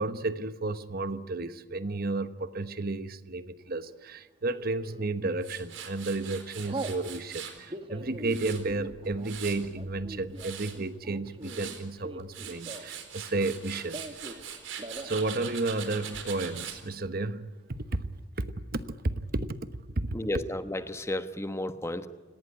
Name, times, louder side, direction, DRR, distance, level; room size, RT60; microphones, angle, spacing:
voice 1, 0.0-14.0 15.0-18.0 18.4-18.5 18.7-19.6 20.0-20.2, right 2 dB, 50° right, 1.1 m, -32 dB
Telephone, 4.5-5.0 5.6-5.9 6.1-7.0 7.6-13.1 13.3-14.4 14.7-15.2 15.5-15.6 15.8-16.4, right 2 dB, 30° right, 1.8 m, -42 dB
Tools, 5.4-7.6 8.0-9.7 10.1-10.7 11.2-11.8 12.2-16.8, right 8 dB, 85° right, 4.2 m, -42 dB
voice 2, 20.1-22.1, left 1 dB, 15° left, 1.2 m, -33 dB
30.0 x 18.5 x 9.8 m
head